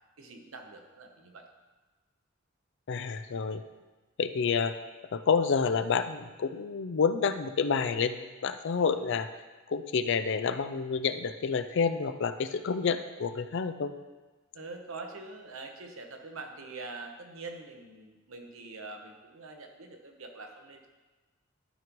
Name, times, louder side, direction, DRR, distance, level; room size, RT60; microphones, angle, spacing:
voice 1, 0.2-1.4 14.5-20.9, right 3 dB, 80° right, 3 dB, 1.0 m, -44 dB
voice 2, 2.9-3.6 4.2-4.7 5.1-9.3 9.7-13.9, left 5 dB, 60° left, 10 dB, 0.4 m, -29 dB
12.0 x 5.3 x 3.1 m, 1.2 s
head